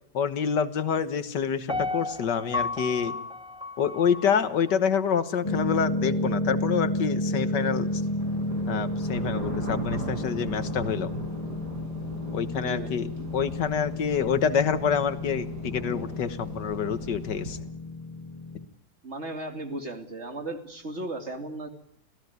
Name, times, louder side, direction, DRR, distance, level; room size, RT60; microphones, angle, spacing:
voice 1, 0.1-3.2 3.8-8.0 8.7-11.1 12.3-17.6, left 7 dB, 80° left, 12 dB, 2.0 m, -27 dB
Piano, 1.7-4.8 5.2-5.3, left 3 dB, 5° right, 0.7 m, -33 dB
sound 1, 5.4-18.6, left 1 dB, 20° left, 1.3 m, -32 dB
sound 2, 7.3-17.6, right 1 dB, 70° right, 7.4 m, -38 dB
voice 2, 12.5-12.9 19.0-21.7, right 2 dB, 40° right, 6 dB, 2.9 m, -36 dB
26.5 x 17.0 x 9.5 m, 0.72 s
omnidirectional pair, 1.8 m